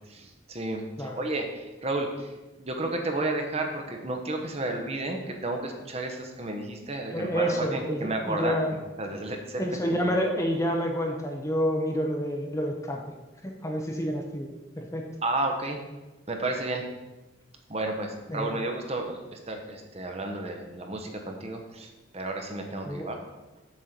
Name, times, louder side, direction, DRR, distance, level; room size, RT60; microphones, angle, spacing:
voice 1, 0.1-2.3 2.6-8.6 9.0-10.0 15.2-15.8 16.3-16.8 17.7-23.2, right 2 dB, 30° right, 3 dB, 0.9 m, -32 dB
voice 2, 7.1-8.8 9.6-13.0 13.4-14.5 14.8-15.1 18.3-18.6 22.8-23.1, equal, 15° left, 2 dB, 0.7 m, -28 dB
7.4 x 4.4 x 6.6 m, 1.1 s
head